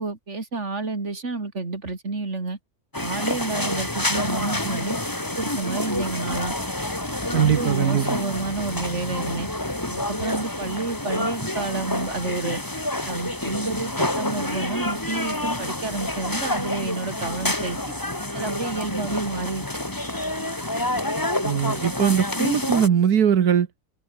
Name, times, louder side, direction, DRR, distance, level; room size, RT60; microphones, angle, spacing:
voice 1, 0.0-2.6 3.0-5.0 5.4-6.5 7.3-9.5 9.9-12.6 13.0-17.8 18.3-19.6, right 3 dB, 50° right, 3.5 m, -30 dB
sound 1, 2.9-22.9, left 1 dB, 15° left, 2.4 m, -28 dB
voice 2, 7.3-8.2 21.4-23.7, right 8 dB, 90° right, 1.8 m, -20 dB
omnidirectional pair, 1.6 m